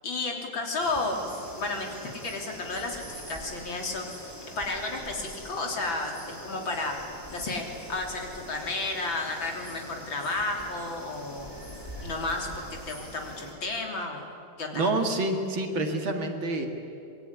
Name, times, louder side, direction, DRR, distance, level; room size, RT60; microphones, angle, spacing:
voice 1, 0.0-1.3 1.6-4.1 4.6-7.0 7.3-11.6 12.0-14.3 14.6-14.9, left 2 dB, 60° left, 1 dB, 4.1 m, -32 dB
sound 1, 0.8-13.5, equal, 10° left, 4.7 m, -43 dB
voice 2, 14.7-16.7, right 2 dB, 65° right, 3 dB, 3.1 m, -27 dB
26.5 x 22.5 x 9.9 m, 2.8 s
omnidirectional pair, 2.3 m